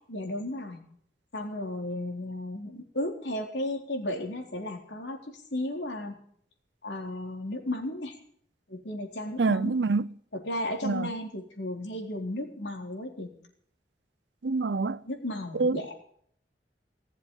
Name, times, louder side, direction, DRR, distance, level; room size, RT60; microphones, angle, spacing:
voice 1, 0.1-0.8 1.3-6.2 6.8-8.2 8.7-9.8 10.3-13.3 15.0-15.9, left 1 dB, 90° left, 3.9 m, -34 dB
voice 2, 9.4-10.1 10.8-11.1 14.4-15.0 15.5-15.9, right 3 dB, 85° right, 0.6 m, -26 dB
19.0 x 7.6 x 10.0 m
head